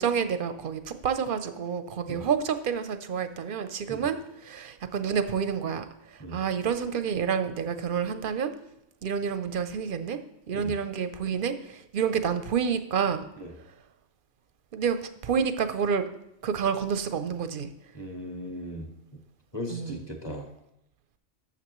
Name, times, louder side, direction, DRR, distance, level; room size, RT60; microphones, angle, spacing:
voice 1, 0.0-5.9 6.3-8.5 9.0-10.2 10.5-13.3 14.7-15.0 15.2-16.0 16.4-17.7 19.7-20.0, right 7 dB, 55° right, 10 dB, 0.7 m, -28 dB
voice 2, 17.9-18.9 19.5-20.5, equal, 20° left, 2 dB, 1.3 m, -37 dB
12.0 x 7.2 x 3.0 m, 0.84 s
omnidirectional pair, 1.3 m